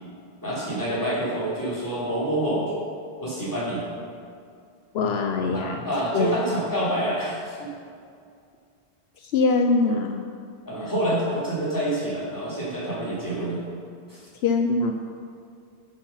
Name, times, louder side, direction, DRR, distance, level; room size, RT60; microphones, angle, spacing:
voice 1, 0.4-2.7 3.2-3.8 5.5-7.7 10.6-13.6 14.1-14.2, right 1 dB, 20° left, -8 dB, 3.2 m, -27 dB
voice 2, 4.9-5.8 6.1-6.4 9.3-10.2 14.4-14.9, left 3 dB, 75° left, 4 dB, 0.9 m, -22 dB
10.5 x 8.0 x 5.6 m, 2.3 s
omnidirectional pair, 1.1 m